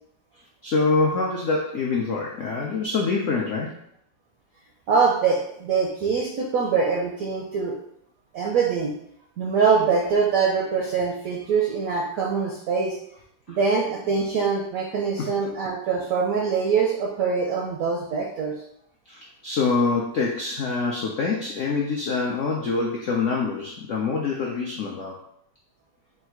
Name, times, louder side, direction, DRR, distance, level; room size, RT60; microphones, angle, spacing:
voice 1, 0.6-3.7 13.5-13.6 15.2-15.3 19.1-25.2, left 4 dB, 85° left, -2 dB, 0.6 m, -25 dB
voice 2, 4.9-7.7 8.3-8.9 9.4-13.0 13.5-18.5, right 5 dB, 75° right, -1 dB, 0.8 m, -23 dB
3.8 x 2.3 x 4.4 m, 0.73 s
omnidirectional pair, 2.0 m